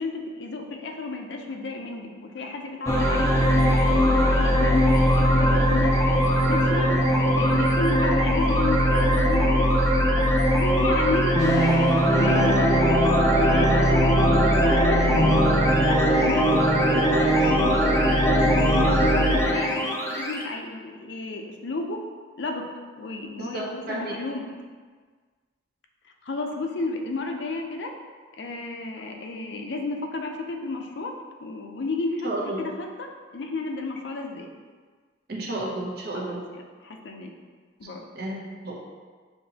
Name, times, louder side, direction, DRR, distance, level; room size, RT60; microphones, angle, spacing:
voice 1, 0.0-3.8 4.0-6.0 6.5-6.9 7.4-9.7 10.5-12.6 13.4-13.9 14.4-15.4 15.7-16.5 16.9-19.8 20.1-22.0 22.4-22.6 23.0-24.5 26.2-27.9 28.4-31.1 31.4-32.3 32.6-34.5 36.1-37.3 37.8-38.0, left 3 dB, 70° left, 3 dB, 0.5 m, -32 dB
sound 1, 2.9-20.4, equal, 15° left, 0.5 m, -20 dB
voice 2, 23.4-24.1 32.2-32.6 35.3-36.4 38.1-38.7, right 1 dB, 55° right, -2 dB, 0.8 m, -32 dB
6.5 x 2.9 x 2.8 m, 1.5 s
head